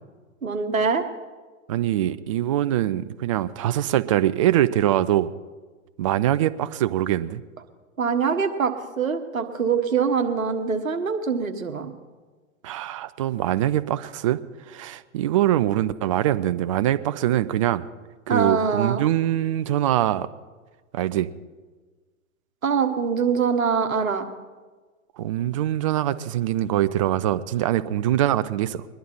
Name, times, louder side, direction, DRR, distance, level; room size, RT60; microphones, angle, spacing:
voice 1, 0.4-1.0 8.0-11.9 18.3-19.0 22.6-24.2, right 6 dB, 80° right, 6 dB, 1.6 m, -24 dB
voice 2, 1.7-5.3 6.0-7.4 12.6-14.4 14.7-17.8 18.3-20.3 20.9-21.3 25.2-28.9, right 13 dB, 25° right, 14 dB, 0.3 m, -23 dB
21.5 x 11.0 x 4.4 m, 1.4 s
figure-of-eight pair, 105°, 41 cm